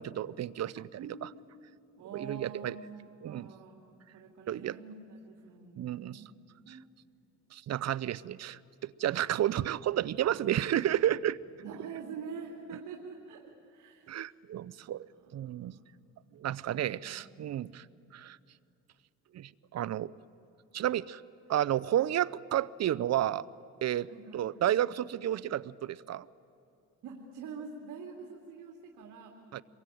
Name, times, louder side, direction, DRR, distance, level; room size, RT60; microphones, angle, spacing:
voice 1, 0.0-1.3 2.1-2.7 3.2-3.5 4.5-4.8 5.8-6.2 6.7-6.8 7.5-11.4 14.1-15.8 16.3-17.9 18.1-18.4 19.3-20.1 20.7-21.2 21.5-23.5 23.8-26.3 29.5-29.6, right 11 dB, 60° right, 20 dB, 0.7 m, -31 dB
voice 2, 1.0-1.4 2.0-6.4 6.7-6.8 10.2-10.4 11.6-14.3 14.7-14.9 15.2-15.8 16.2-16.3 16.8-17.2 17.5-17.9 24.1-24.4 27.0-29.3, right 5 dB, 85° right, 1 dB, 2.8 m, -46 dB
27.5 x 23.0 x 9.2 m, 2.7 s
cardioid pair, 90°, 30 cm